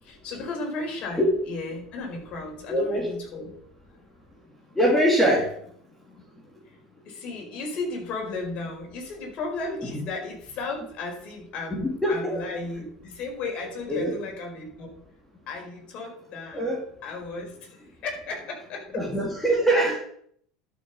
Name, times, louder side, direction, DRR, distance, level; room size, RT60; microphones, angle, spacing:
voice 1, 0.0-3.5 7.0-14.9 15.5-16.7 17.0-19.1 19.5-20.0, left 3 dB, 50° left, 1 dB, 4.7 m, -35 dB
voice 2, 2.7-3.1 4.8-5.4 11.8-12.4 13.9-14.1 16.5-16.8 18.9-20.0, right 1 dB, 10° left, -1 dB, 3.0 m, -23 dB
11.5 x 6.5 x 5.5 m, 0.65 s
hypercardioid pair, 75°, 3 cm